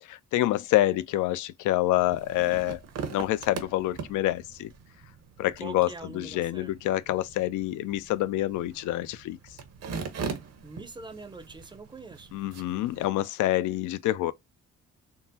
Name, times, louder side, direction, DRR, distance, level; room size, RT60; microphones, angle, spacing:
voice 1, 0.1-2.8 3.1-4.7 5.4-5.9 6.1-9.4 12.3-14.3, left 15 dB, 80° left, 0.4 m, -27 dB
sound 1, 1.9-13.1, right 5 dB, 55° right, 0.8 m, -41 dB
voice 2, 5.6-6.7 10.6-12.3, right 3 dB, 15° right, 0.5 m, -43 dB
3.6 x 2.0 x 2.7 m
cardioid pair, 90°, 30 cm